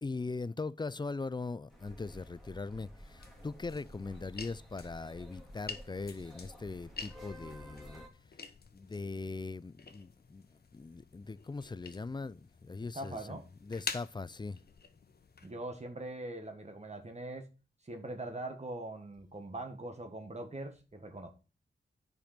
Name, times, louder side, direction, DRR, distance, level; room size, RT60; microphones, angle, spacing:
voice 1, 0.0-8.0 8.7-14.6, left 3 dB, 25° left, 0.4 m, -40 dB
sound 1, 1.7-8.1, equal, ahead, 2.8 m, -52 dB
sound 2, 3.0-15.5, left 5 dB, 55° left, 1.2 m, -48 dB
voice 2, 12.9-13.4 15.4-17.5 17.8-21.3, right 2 dB, 35° right, 1.7 m, -42 dB
8.9 x 5.2 x 6.7 m
cardioid pair, 70°, 19 cm